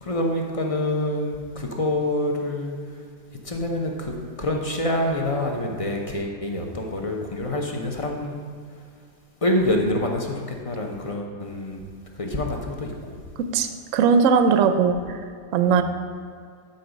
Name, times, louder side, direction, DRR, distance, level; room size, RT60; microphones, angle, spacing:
voice 1, 0.0-2.8 3.4-8.4 9.4-11.8 12.2-13.2 15.7-15.8, left 1 dB, 35° left, 1 dB, 0.5 m, -26 dB
voice 2, 13.4-15.2 15.5-15.8, right 6 dB, 65° right, 8 dB, 0.8 m, -19 dB
12.0 x 4.1 x 5.2 m, 2.2 s
omnidirectional pair, 1.7 m